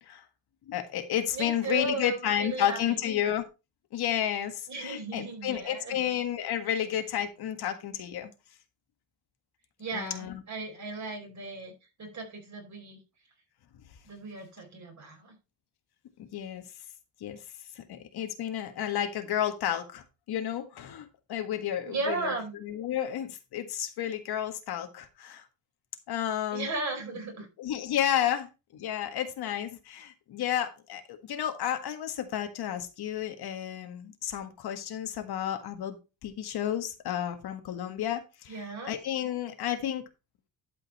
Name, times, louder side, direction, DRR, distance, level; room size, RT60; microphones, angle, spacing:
voice 1, 0.7-3.4 3.9-8.3 9.9-10.4 16.2-16.6 17.2-17.4 17.8-22.3 22.6-25.4 26.1-26.7 27.6-36.0 36.2-40.0, left 10 dB, 85° left, 7 dB, 1.7 m, -31 dB
voice 2, 1.3-3.1 4.7-6.0 9.8-11.7 12.0-13.0 14.0-15.3 21.8-22.5 26.5-27.5 38.5-38.9, right 3 dB, 45° right, 2 dB, 4.8 m, -36 dB
11.5 x 5.3 x 4.2 m, 0.28 s
cardioid pair, 135°, 38 cm